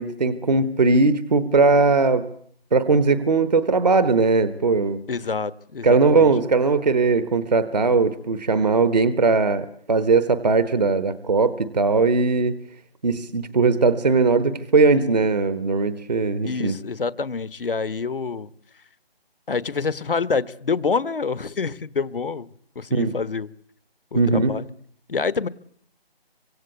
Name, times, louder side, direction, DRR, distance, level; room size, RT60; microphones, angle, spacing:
voice 1, 0.0-2.3 2.7-5.0 5.8-12.5 13.0-16.7 22.9-23.2 24.1-24.5, right 3 dB, 45° right, 13 dB, 1.2 m, -19 dB
voice 2, 5.1-6.3 16.4-18.5 19.5-23.5 24.1-24.7 25.1-25.5, left 4 dB, 60° left, 17 dB, 1.2 m, -27 dB
26.5 x 25.5 x 8.2 m, 0.62 s
figure-of-eight pair, 170°, 30 cm